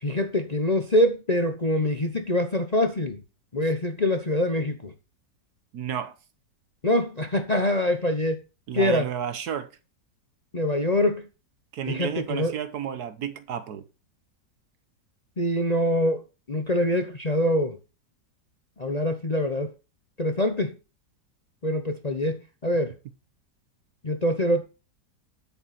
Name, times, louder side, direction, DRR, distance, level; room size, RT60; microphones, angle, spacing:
voice 1, 0.0-3.2 3.5-4.9 6.8-8.4 8.7-9.1 10.5-11.3 11.9-12.5 15.4-16.2 16.5-17.8 18.8-19.7 20.2-20.8 21.6-22.9 24.0-24.6, left 1 dB, 30° left, 0.8 m, -24 dB
voice 2, 5.7-6.2 8.7-9.7 11.7-13.8, right 8 dB, 65° right, 1.4 m, -31 dB
9.2 x 8.4 x 4.3 m
omnidirectional pair, 1.9 m